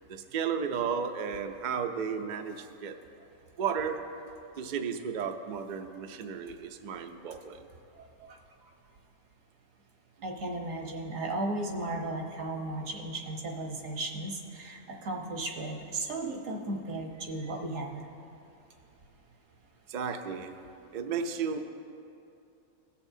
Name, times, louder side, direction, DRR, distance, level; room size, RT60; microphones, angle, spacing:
voice 1, 0.1-2.9 3.6-4.0 4.6-7.6 19.9-20.5 20.9-21.6, right 6 dB, 60° right, 6 dB, 0.5 m, -33 dB
voice 2, 10.2-18.0, right 2 dB, 75° right, 1 dB, 1.4 m, -35 dB
17.5 x 6.8 x 2.7 m, 2.7 s
omnidirectional pair, 1.4 m